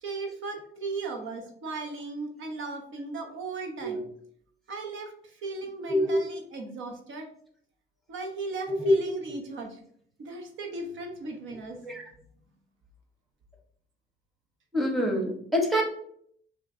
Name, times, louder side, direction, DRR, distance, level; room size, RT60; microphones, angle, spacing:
voice 1, 0.0-4.0 4.7-7.3 8.1-9.8 10.2-11.8, right 3 dB, 75° right, 3 dB, 1.0 m, -37 dB
voice 2, 5.9-6.2 8.8-8.9 11.8-12.0 14.7-15.8, left 1 dB, ahead, 1 dB, 1.2 m, -25 dB
5.2 x 3.1 x 2.7 m, 0.63 s
cardioid pair, 90°, 20 cm